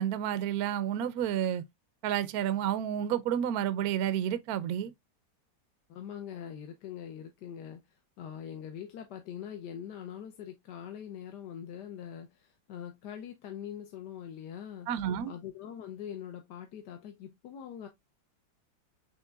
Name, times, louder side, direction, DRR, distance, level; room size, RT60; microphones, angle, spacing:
voice 1, 0.0-1.6 2.0-4.9 14.9-15.3, right 10 dB, 70° right, 0.9 m, -30 dB
voice 2, 5.9-7.8 8.2-14.9 15.3-17.9, left 9 dB, 70° left, 1.3 m, -43 dB
7.4 x 3.2 x 2.3 m
omnidirectional pair, 2.0 m